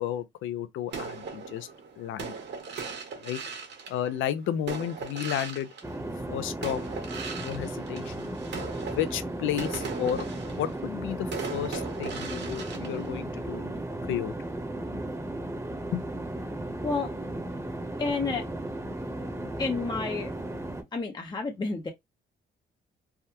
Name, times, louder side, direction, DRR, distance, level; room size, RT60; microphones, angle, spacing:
voice 1, 0.0-1.7 2.0-2.4 3.2-3.4 3.9-5.7 6.3-6.8 7.4-8.3 8.7-13.8 14.1-14.3 15.9-16.0, left 11 dB, 80° left, 0.5 m, -32 dB
sound 1, 0.9-6.3 6.6-13.8, right 5 dB, 60° right, 1.3 m, -39 dB
sound 2, 5.8-20.8, right 1 dB, 15° right, 0.9 m, -35 dB
voice 2, 18.0-18.4 19.6-20.3 20.9-21.9, left 4 dB, 20° left, 0.6 m, -30 dB
3.5 x 2.2 x 2.8 m
cardioid pair, 90°, 20 cm